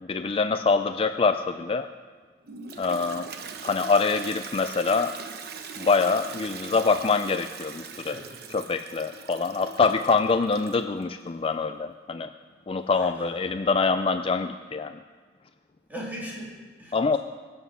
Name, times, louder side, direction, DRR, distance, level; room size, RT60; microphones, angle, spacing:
voice 1, 0.0-1.9 2.8-3.3 3.6-5.1 5.7-8.2 8.5-12.3 12.7-15.0 16.9-17.2, left 4 dB, 30° left, 8 dB, 0.4 m, -25 dB
Toilet flush, 2.4-11.0, right 5 dB, 60° right, 0.9 m, -41 dB
voice 2, 7.9-8.3 8.6-8.8 9.4-9.5 12.9-13.7 15.9-17.2, equal, 10° right, -5 dB, 3.4 m, -40 dB
21.5 x 7.3 x 5.6 m, 1.5 s
head